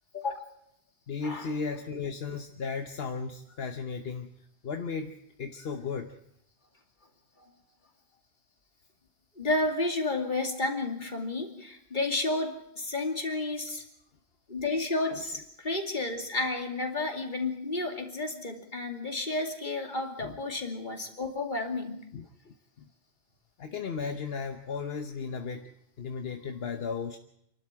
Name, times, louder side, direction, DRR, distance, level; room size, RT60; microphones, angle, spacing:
voice 1, 1.1-4.3 4.6-6.1 15.1-15.2 20.2-20.4 22.1-22.2 22.8-22.9 23.6-25.7 26.0-27.2, left 5 dB, 75° left, 7 dB, 1.3 m, -35 dB
voice 2, 9.4-13.8 14.5-22.1, left 2 dB, 50° left, 4 dB, 2.7 m, -31 dB
27.0 x 12.0 x 8.9 m, 0.75 s
omnidirectional pair, 1.0 m